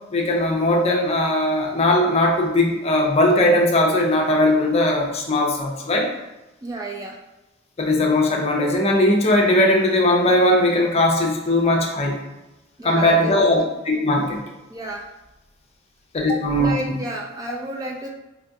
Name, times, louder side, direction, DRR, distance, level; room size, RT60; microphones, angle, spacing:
voice 1, 0.1-6.1 7.8-12.2 12.8-14.4 16.1-17.0, left 1 dB, 30° left, 0 dB, 0.5 m, -19 dB
voice 2, 6.6-7.2 12.8-13.5 14.7-15.0 16.2-18.1, right 1 dB, 20° right, 0 dB, 0.3 m, -31 dB
4.5 x 2.5 x 2.3 m, 1.0 s
head